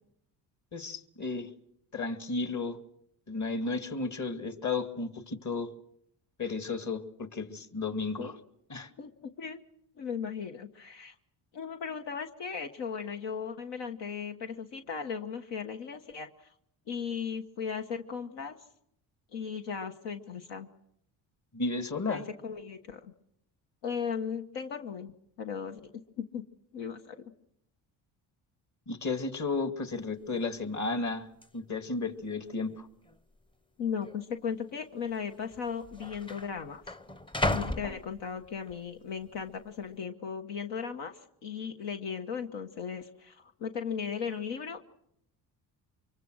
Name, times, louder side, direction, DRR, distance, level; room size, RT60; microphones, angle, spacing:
voice 1, 0.7-1.5 1.9-2.8 3.3-5.7 6.4-8.3 8.7-8.9 21.5-22.2 28.9-31.3 31.5-32.9, left 3 dB, 40° left, 9 dB, 2.3 m, -33 dB
voice 2, 9.0-9.6 10.0-11.1 11.5-16.5 16.9-18.6 19.3-20.7 22.1-23.1 23.8-25.1 25.4-26.4 26.7-27.2 33.8-36.8 37.4-44.9, left 6 dB, 75° left, 5 dB, 1.4 m, -37 dB
sound 1, 29.9-30.0 30.3-30.7 31.4-31.5 32.3-32.8 33.0-33.2 34.0-34.2 35.2-35.3 35.5-38.7 39.2-39.6, left 1 dB, 10° left, 0.8 m, -36 dB
24.5 x 23.0 x 6.3 m, 0.76 s
supercardioid pair, 75°, 42 cm